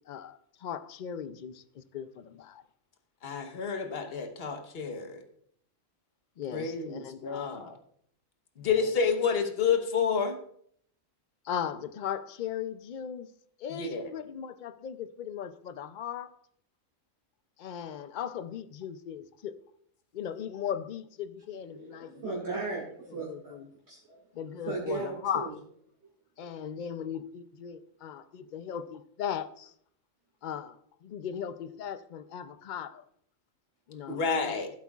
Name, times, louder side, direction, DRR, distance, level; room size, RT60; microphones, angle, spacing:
voice 1, 0.1-2.6 6.4-7.7 8.6-8.9 11.4-13.3 13.6-16.4 17.6-19.6 20.1-22.4 23.1-23.7 24.3-25.6 26.4-29.7 30.4-33.0 33.9-34.2, left 8 dB, 65° left, 0.4 m, -38 dB
voice 2, 3.2-5.2 6.5-7.7 8.6-10.3 13.8-14.1 34.1-34.7, left 6 dB, 50° left, 1.2 m, -29 dB
voice 3, 21.7-23.5 23.9-24.2 24.6-25.5, right 3 dB, 55° right, 2.5 m, -36 dB
16.0 x 8.1 x 2.4 m
omnidirectional pair, 1.4 m